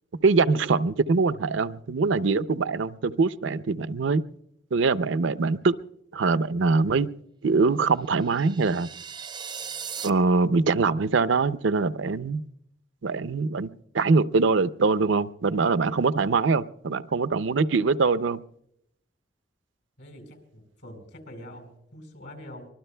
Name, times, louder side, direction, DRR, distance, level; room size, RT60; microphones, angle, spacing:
voice 1, 0.2-4.2 4.7-5.8 6.1-7.1 7.4-8.9 10.0-12.4 13.0-13.7 13.9-18.4, right 4 dB, 80° right, 14 dB, 0.5 m, -23 dB
sound 1, 8.1-10.1, right 7 dB, 25° right, 0.5 m, -38 dB
voice 2, 20.0-22.7, left 1 dB, 70° left, 5 dB, 4.6 m, -45 dB
24.5 x 21.0 x 2.2 m, 0.74 s
head